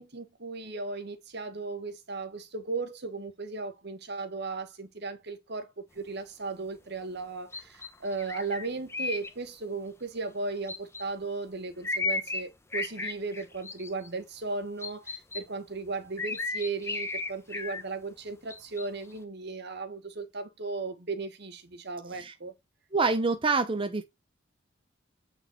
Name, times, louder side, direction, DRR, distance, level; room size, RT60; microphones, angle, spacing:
voice 1, 0.0-22.5, right 3 dB, 60° right, 1.4 m, -36 dB
sound 1, 7.5-9.3 10.7-11.0 11.8-12.5 12.7-14.1 14.8-15.4 16.2-17.8 18.5-18.9, left 3 dB, 15° left, 1.0 m, -34 dB
voice 2, 22.9-24.0, right 4 dB, 25° right, 0.7 m, -26 dB
9.0 x 4.3 x 4.5 m
head